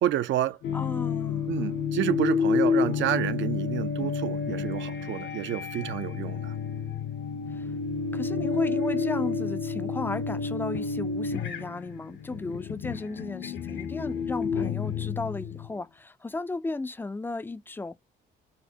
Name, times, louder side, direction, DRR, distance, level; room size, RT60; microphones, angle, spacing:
voice 1, 0.0-0.6 1.5-6.5, right 12 dB, 75° right, 0.5 m, -29 dB
sound 1, 0.6-15.8, left 5 dB, 65° left, 0.8 m, -30 dB
voice 2, 0.7-1.5 7.5-7.7 8.1-17.9, left 3 dB, 10° left, 0.3 m, -35 dB
4.0 x 2.0 x 2.7 m
cardioid pair, 90°, 20 cm